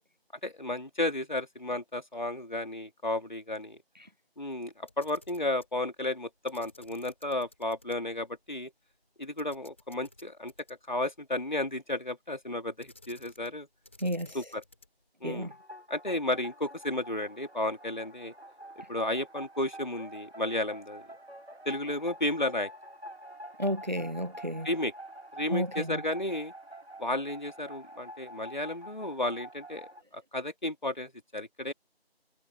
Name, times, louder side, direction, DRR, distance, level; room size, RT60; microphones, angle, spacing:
voice 1, 0.4-3.8 4.4-8.7 9.2-10.5 10.9-13.7 14.3-14.6 15.2-15.5 15.9-18.3 18.9-21.0 21.6-22.7 24.6-24.9 25.3-26.5 27.0-31.7, left 1 dB, 45° left, 2.8 m, -33 dB
Camera, 4.8-5.7 6.5-8.0 8.3-8.4 9.4-11.0 12.8-13.6 13.8-15.0, left 2 dB, 10° left, 2.9 m, -56 dB
voice 2, 14.0-14.4 15.2-15.5 23.6-24.7 25.5-26.0, equal, 45° right, 0.5 m, -32 dB
sound 1, 15.4-30.0, right 1 dB, 80° right, 2.1 m, -47 dB
figure-of-eight pair, 175°, 31 cm